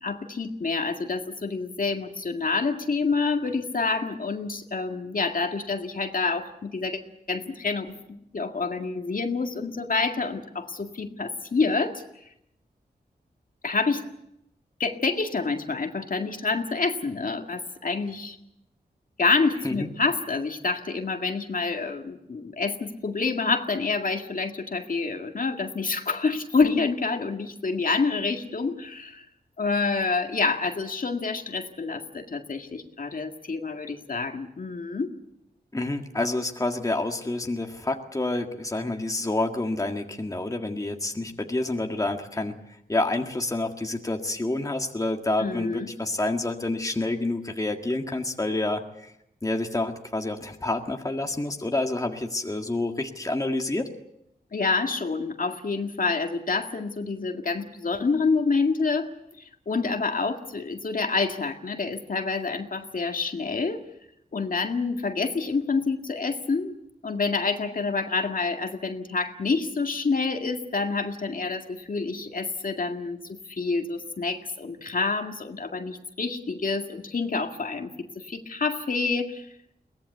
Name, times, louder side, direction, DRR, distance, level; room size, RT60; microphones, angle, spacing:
voice 1, 0.0-7.0 7.3-12.0 13.6-14.0 14.8-18.4 19.2-29.3 29.6-35.1 45.4-45.9 54.5-59.1 59.4-63.9 64.3-66.8 67.0-79.5, left 4 dB, 55° left, 4 dB, 2.0 m, -27 dB
voice 2, 35.7-42.6 42.9-49.1 49.4-53.9, left 2 dB, 20° left, 3 dB, 1.8 m, -28 dB
22.5 x 18.0 x 8.1 m, 0.80 s
wide cardioid pair, 90°, 17 cm